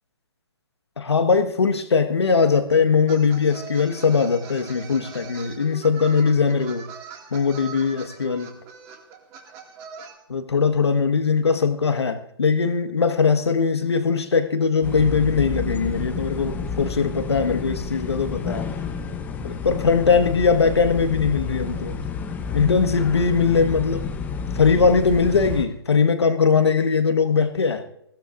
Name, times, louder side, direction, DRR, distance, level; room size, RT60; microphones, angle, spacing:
voice 1, 1.0-6.9 7.3-8.6 10.3-18.7 19.4-22.0 22.5-24.1 24.5-27.8, left 5 dB, 75° left, 7 dB, 1.6 m, -20 dB
sound 1, 3.1-10.1, right 6 dB, 25° right, 2.2 m, -42 dB
sound 2, 14.8-25.7, left 5 dB, 10° left, 1.0 m, -30 dB
20.5 x 16.5 x 2.6 m, 0.77 s
figure-of-eight pair, 135°, 14 cm